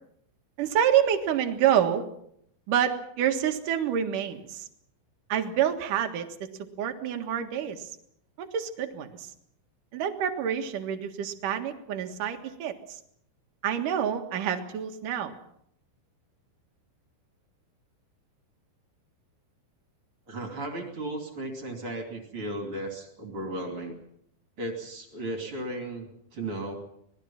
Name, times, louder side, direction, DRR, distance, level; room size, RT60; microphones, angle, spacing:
voice 1, 0.6-2.1 2.7-4.7 5.3-6.3 6.8-8.0 8.4-9.3 9.9-13.0 13.6-15.3, right 9 dB, 60° right, 5 dB, 2.7 m, -27 dB
voice 2, 20.3-24.0 24.6-26.8, right 1 dB, 35° right, 3 dB, 3.3 m, -35 dB
26.0 x 20.0 x 5.9 m, 0.71 s
omnidirectional pair, 5.3 m